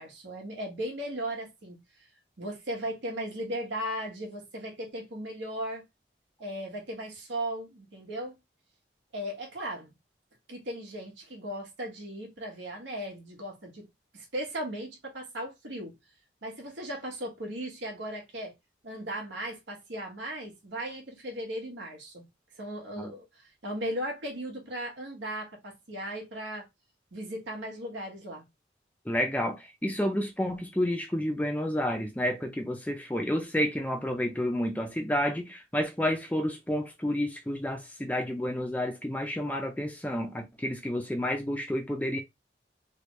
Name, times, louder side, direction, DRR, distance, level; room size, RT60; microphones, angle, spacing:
voice 1, 0.0-1.8 2.4-5.8 6.4-8.4 9.1-9.9 10.5-15.9 16.4-18.5 18.8-22.3 22.6-26.7 27.1-28.5, right 1 dB, 85° right, 1.3 m, -37 dB
voice 2, 29.1-42.2, left 1 dB, 10° left, 0.5 m, -30 dB
3.4 x 2.3 x 3.0 m
head